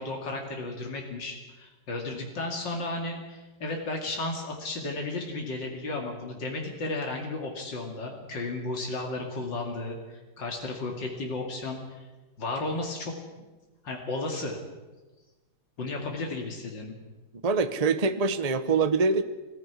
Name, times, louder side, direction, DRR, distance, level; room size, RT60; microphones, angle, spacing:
voice 1, 0.0-12.1 12.4-13.1 13.8-14.6 15.8-16.9, left 2 dB, 85° left, 1 dB, 3.1 m, -34 dB
voice 2, 17.4-19.2, right 4 dB, 35° right, 10 dB, 0.6 m, -24 dB
21.0 x 15.0 x 9.7 m, 1.2 s
omnidirectional pair, 1.9 m